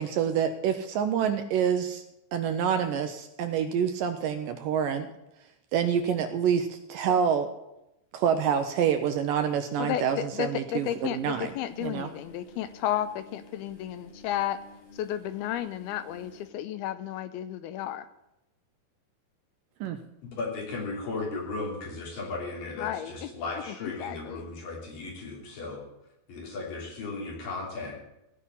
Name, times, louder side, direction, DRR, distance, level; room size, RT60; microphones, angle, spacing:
voice 1, 0.0-2.0 2.3-5.1 5.7-7.5 8.1-11.5 11.8-12.1 19.8-20.0, right 8 dB, 80° right, 8 dB, 2.1 m, -27 dB
voice 2, 9.8-14.6 14.9-18.1 22.8-23.3 23.7-24.5, left 11 dB, 85° left, 12 dB, 2.6 m, -33 dB
sound 1, 10.7-16.5, left 3 dB, 40° left, 4.0 m, -52 dB
voice 3, 20.3-25.9 26.3-28.0, left 3 dB, 60° left, -3 dB, 4.8 m, -36 dB
17.0 x 5.6 x 9.9 m, 0.89 s
omnidirectional pair, 4.5 m